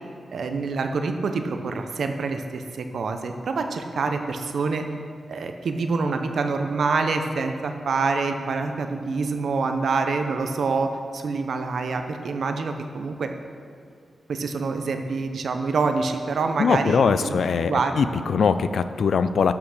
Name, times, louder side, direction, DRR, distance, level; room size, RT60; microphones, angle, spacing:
voice 1, 0.3-4.9 5.3-13.3 14.3-17.3 17.6-18.0, right 4 dB, 65° right, 6 dB, 0.8 m, -26 dB
voice 2, 16.6-19.5, left 5 dB, 65° left, 12 dB, 0.4 m, -21 dB
11.5 x 5.9 x 6.5 m, 2.2 s
wide cardioid pair, 175°, 0 cm